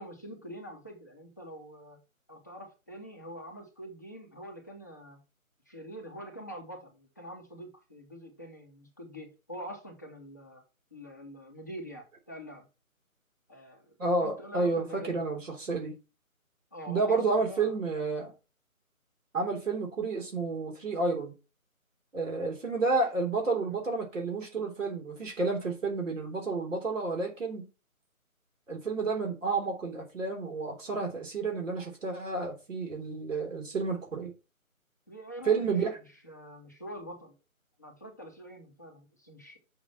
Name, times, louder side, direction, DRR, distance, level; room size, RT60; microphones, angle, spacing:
voice 1, 0.0-2.0 2.3-5.2 5.7-10.6 10.9-12.7 13.5-15.3 16.7-17.8 35.1-35.7 36.2-37.3 37.8-39.6, equal, 15° left, 0.7 m, -45 dB
voice 2, 14.0-15.9 16.9-18.3 19.3-21.3 22.1-27.7 28.7-34.3 35.5-35.9, right 3 dB, 60° right, 3.6 m, -30 dB
6.1 x 5.3 x 5.8 m
figure-of-eight pair, 160°, 43 cm